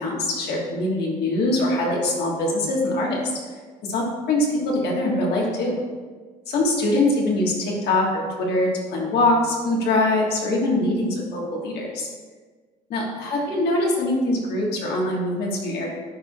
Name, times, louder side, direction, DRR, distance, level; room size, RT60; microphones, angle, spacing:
voice 1, 0.0-3.2 3.8-5.7 6.5-12.1 12.9-15.9, left 2 dB, 75° left, -2 dB, 1.6 m, -23 dB
10.5 x 4.6 x 2.4 m, 1.4 s
cardioid pair, 110°, 17 cm